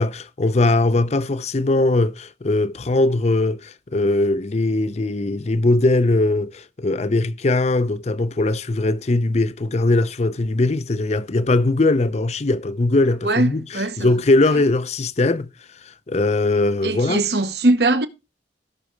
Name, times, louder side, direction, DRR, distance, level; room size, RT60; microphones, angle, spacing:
voice 1, 0.0-15.5 16.1-17.2, left 2 dB, 40° left, 0.5 m, -20 dB
voice 2, 13.2-14.1 16.8-18.1, right 2 dB, 65° right, 1.0 m, -20 dB
17.5 x 6.1 x 3.1 m
head